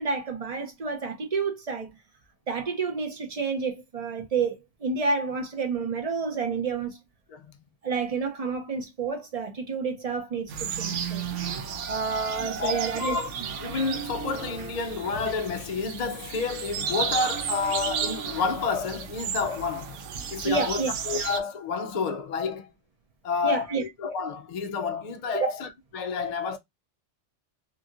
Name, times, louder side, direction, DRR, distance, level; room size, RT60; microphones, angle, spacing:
voice 1, 0.0-1.9 2.5-7.0 7.8-11.2 11.9-13.5 20.1-20.9 23.4-23.8 25.3-25.6, right 4 dB, 40° right, 0.6 m, -29 dB
sound 1, 10.5-21.4, right 7 dB, 80° right, 0.9 m, -33 dB
voice 2, 12.4-13.3 13.6-20.0 20.3-22.7 23.2-25.7 25.9-26.6, left 4 dB, 80° left, 0.3 m, -29 dB
2.9 x 2.7 x 2.3 m
omnidirectional pair, 1.2 m